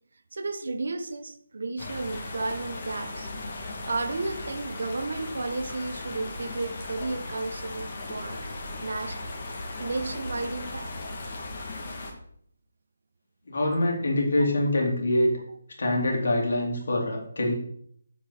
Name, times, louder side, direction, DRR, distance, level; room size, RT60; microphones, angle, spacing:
voice 1, 0.3-3.3 3.6-8.4 8.8-9.2 9.7-10.9 14.4-14.5, right 3 dB, 60° right, 9 dB, 1.1 m, -33 dB
sound 1, 1.8-12.1, left 2 dB, 40° left, 2.5 m, -37 dB
voice 2, 13.5-15.3 15.8-17.5, left 1 dB, 55° left, -1 dB, 3.6 m, -24 dB
8.8 x 8.2 x 4.3 m, 0.64 s
figure-of-eight pair, 150°, 0 cm